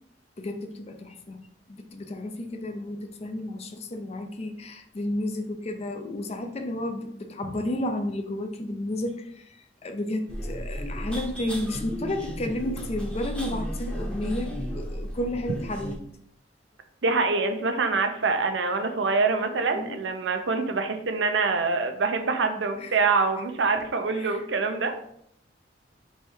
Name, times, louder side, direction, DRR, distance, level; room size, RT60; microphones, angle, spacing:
voice 1, 0.4-16.0 19.7-20.0 22.8-23.0 24.1-24.4, left 1 dB, 35° left, 6 dB, 0.5 m, -32 dB
sound 1, 10.3-16.0, equal, 5° left, 0.8 m, -34 dB
voice 2, 17.0-25.0, right 4 dB, 75° right, 6 dB, 0.6 m, -25 dB
3.4 x 3.2 x 4.5 m, 0.70 s
head